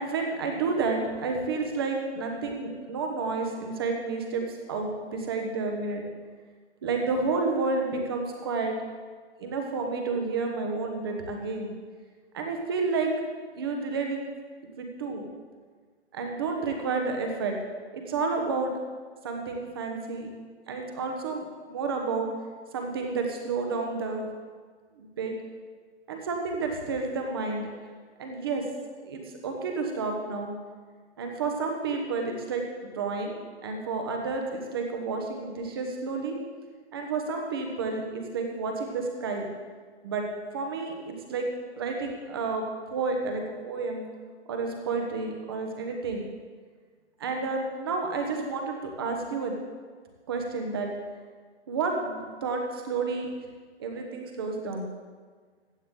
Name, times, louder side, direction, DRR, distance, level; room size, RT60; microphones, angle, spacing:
voice 1, 0.0-6.1 6.8-8.8 9.4-11.7 12.3-13.1 13.6-14.2 14.8-15.3 16.1-17.6 17.9-18.7 19.2-20.3 20.7-22.3 22.7-24.3 25.0-25.4 26.1-27.7 28.2-28.7 29.0-30.5 31.2-32.6 32.9-36.4 36.9-39.5 40.0-40.3 40.5-41.5 41.8-42.6 42.9-44.1 44.5-46.3 47.2-49.5 50.3-50.9 51.7-53.3 53.8-54.9, right 4 dB, 20° right, 2 dB, 1.1 m, -30 dB
15.5 x 9.5 x 3.8 m, 1.5 s
hypercardioid pair, 175°, 34 cm